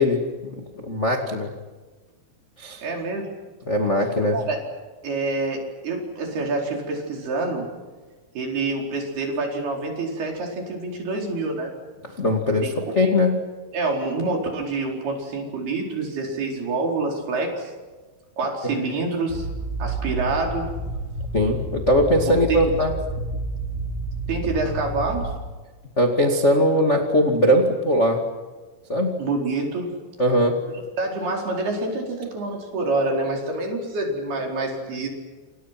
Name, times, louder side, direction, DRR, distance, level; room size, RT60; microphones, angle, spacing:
voice 1, 0.0-1.5 2.6-2.8 3.7-4.4 12.2-12.7 12.9-13.3 21.3-22.9 26.0-28.2 28.9-29.1 30.2-30.5, left 1 dB, 25° left, 2 dB, 1.5 m, -20 dB
voice 2, 2.8-3.3 4.3-4.6 5.0-7.7 8.3-11.7 12.6-12.9 13.7-17.7 18.4-19.5 19.8-20.7 22.3-22.7 24.3-25.3 29.2-29.9 31.0-35.1, right 3 dB, 60° right, 1 dB, 6.4 m, -27 dB
sound 1, 19.3-25.3, right 1 dB, 50° left, 9.2 m, -30 dB
28.5 x 28.0 x 6.1 m, 1.3 s
omnidirectional pair, 5.1 m